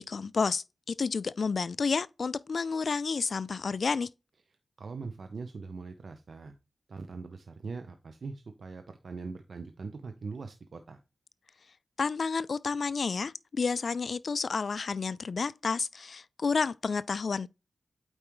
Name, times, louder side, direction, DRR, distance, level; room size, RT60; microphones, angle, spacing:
voice 1, 0.0-4.1 12.0-17.5, left 5 dB, 70° left, 0.3 m, -30 dB
voice 2, 4.8-6.5 6.9-11.0, right 4 dB, 75° right, 0.8 m, -41 dB
8.6 x 4.8 x 3.1 m
cardioid pair, 45°, 0 cm